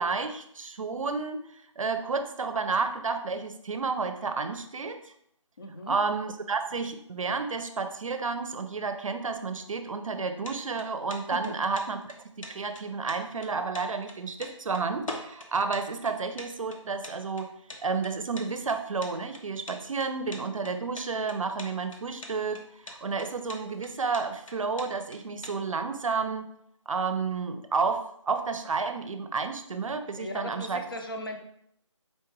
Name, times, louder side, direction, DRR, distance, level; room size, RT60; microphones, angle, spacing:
voice 1, 0.0-1.4 1.8-5.0 5.9-12.0 12.5-17.5 17.8-26.5 26.9-30.8, right 4 dB, 85° right, 9 dB, 0.5 m, -31 dB
voice 2, 5.6-6.0 11.3-11.5 30.2-31.4, left 1 dB, 45° left, 3 dB, 0.5 m, -37 dB
sound 1, 10.2-25.6, left 1 dB, 85° left, 0.8 m, -44 dB
4.2 x 2.3 x 3.1 m, 0.71 s
figure-of-eight pair, 175°, 17 cm